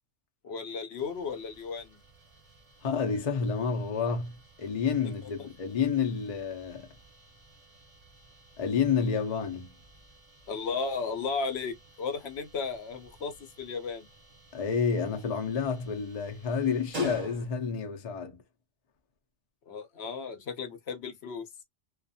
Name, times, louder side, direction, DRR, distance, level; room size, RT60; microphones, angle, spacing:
voice 1, 0.4-2.0 10.5-14.1 19.7-21.5, left 5 dB, 65° left, 0.9 m, -35 dB
sound 1, 1.0-17.8, right 3 dB, 40° right, 0.9 m, -50 dB
voice 2, 2.8-6.9 8.6-9.7 14.5-18.4, left 6 dB, 45° left, 0.5 m, -29 dB
2.4 x 2.3 x 2.5 m
omnidirectional pair, 1.2 m